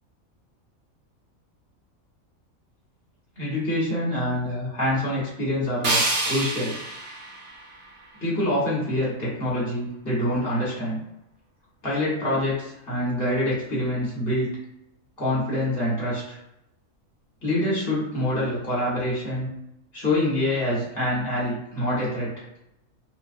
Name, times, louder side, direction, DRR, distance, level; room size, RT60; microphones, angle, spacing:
voice 1, 3.4-6.7 8.2-11.0 11.8-14.5 15.2-16.4 17.4-19.5 19.9-22.3, left 1 dB, 20° left, -7 dB, 0.9 m, -26 dB
sound 1, 5.8-8.8, right 2 dB, 60° right, 1.0 m, -28 dB
2.4 x 2.2 x 2.5 m, 0.84 s
omnidirectional pair, 1.4 m